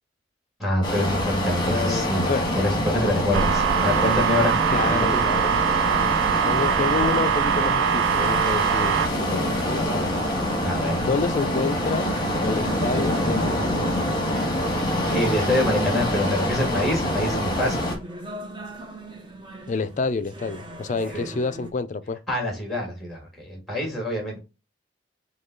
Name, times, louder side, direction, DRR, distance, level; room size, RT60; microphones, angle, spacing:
voice 1, 0.6-2.3 2.6-4.5 4.9-5.0 10.6-11.1 14.3-14.7 15.1-17.9 21.0-21.2 22.3-24.4, left 1 dB, ahead, 1.6 m, -26 dB
sound 1, 0.8-18.0, left 1 dB, 25° left, 1.2 m, -26 dB
voice 2, 1.7-2.5 4.7-5.5 6.4-10.2 11.0-12.1 12.4-13.9 19.7-22.2, left 4 dB, 40° left, 0.4 m, -28 dB
sound 2, 3.3-9.1, right 9 dB, 85° right, 0.3 m, -22 dB
sound 3, 8.9-21.7, right 3 dB, 25° right, 0.8 m, -38 dB
5.2 x 2.3 x 3.7 m
head